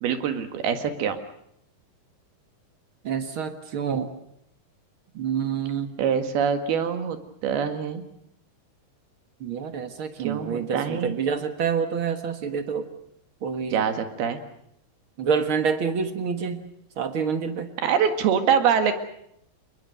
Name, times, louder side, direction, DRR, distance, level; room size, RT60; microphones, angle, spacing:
voice 1, 0.0-1.2 6.0-7.2 7.4-8.0 10.2-11.1 13.7-14.4 17.8-19.0, right 7 dB, 80° right, 7 dB, 3.8 m, -24 dB
voice 2, 3.0-4.1 5.1-5.9 9.4-12.9 13.4-13.8 15.2-16.6 17.0-17.7, right 6 dB, 55° right, 8 dB, 1.4 m, -27 dB
29.0 x 21.0 x 6.7 m, 0.74 s
omnidirectional pair, 4.4 m